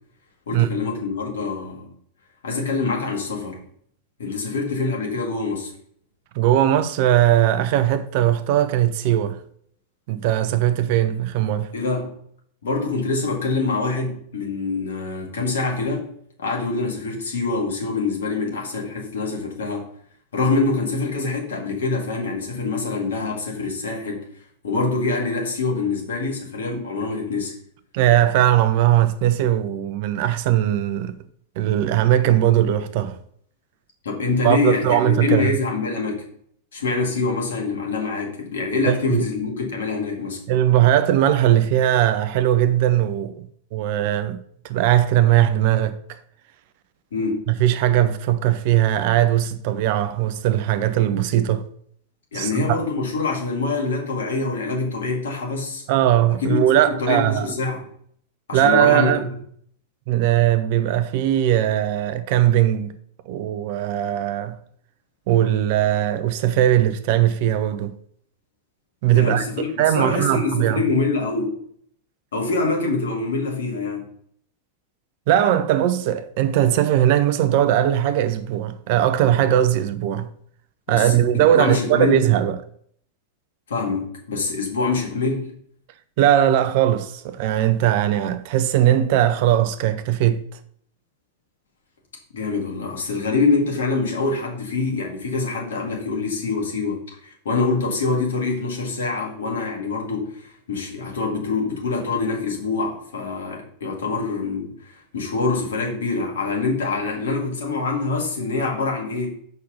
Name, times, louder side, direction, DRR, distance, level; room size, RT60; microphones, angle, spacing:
voice 1, 0.5-1.9 2.4-3.6 4.2-5.7 11.7-12.1 12.6-16.1 16.4-19.8 20.3-24.3 24.6-27.5 34.0-36.2 36.7-40.4 47.1-47.5 52.3-55.8 56.4-56.6 56.9-57.8 58.5-59.3 69.1-71.6 72.3-74.1 80.9-82.2 83.7-85.5 92.3-109.3, left 3 dB, 65° left, 2.1 m, -25 dB
voice 2, 6.3-9.4 10.1-11.7 27.9-31.1 31.6-33.2 34.4-35.6 38.9-39.2 40.5-43.4 43.7-44.4 44.6-46.0 47.5-51.6 52.3-52.8 55.9-57.5 58.5-59.2 60.1-62.9 63.3-64.6 65.3-67.9 69.0-69.4 69.8-70.8 75.3-80.3 80.9-82.6 86.2-90.4, right 12 dB, 50° right, 0.6 m, -19 dB
6.6 x 5.4 x 5.3 m
figure-of-eight pair, 90°, 0 cm